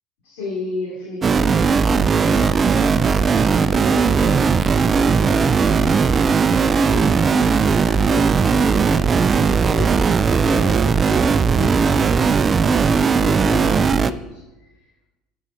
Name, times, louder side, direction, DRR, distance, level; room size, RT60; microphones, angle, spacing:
voice 1, 0.2-6.1 6.7-12.3 12.6-14.9, left 2 dB, 80° left, -7 dB, 2.7 m, -34 dB
sound 1, 1.2-14.1, right 5 dB, 30° right, 0.4 m, -17 dB
7.3 x 7.2 x 5.7 m, 1.1 s
supercardioid pair, 90°, 0 cm